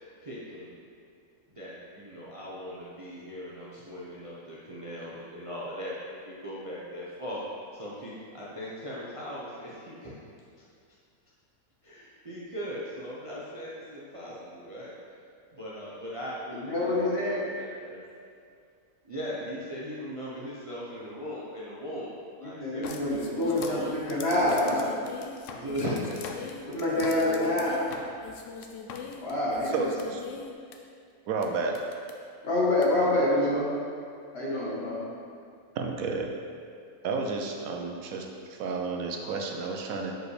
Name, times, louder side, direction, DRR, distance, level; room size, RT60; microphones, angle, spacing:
voice 1, 0.2-0.7 1.5-7.4 7.7-10.1 11.8-14.9 15.5-18.0 19.1-24.2 25.5-26.4, equal, 30° right, -7 dB, 0.7 m, -39 dB
voice 2, 16.5-17.4 22.4-24.9 26.7-27.8 29.1-29.9 32.4-33.7 34.3-35.0, left 1 dB, 45° left, -7 dB, 1.7 m, -26 dB
sound 1, 22.8-30.8 31.4-31.5 31.7-32.1 32.8-32.9, left 5 dB, 65° left, 0.9 m, -41 dB
voice 3, 29.7-30.2 31.3-31.8 35.8-36.3 37.0-40.1, right 4 dB, 75° right, 2 dB, 1.0 m, -31 dB
7.7 x 4.8 x 3.3 m, 2.3 s
omnidirectional pair, 1.5 m